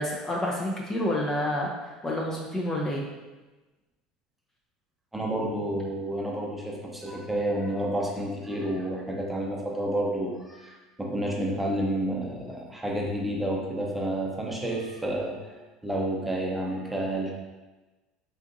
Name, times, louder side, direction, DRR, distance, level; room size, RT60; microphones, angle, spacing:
voice 1, 0.0-3.1, left 1 dB, 20° left, -2 dB, 0.6 m, -29 dB
voice 2, 5.1-17.3, right 1 dB, 5° right, -2 dB, 0.8 m, -30 dB
3.8 x 3.4 x 2.5 m, 1.2 s
hypercardioid pair, 70°, 2 cm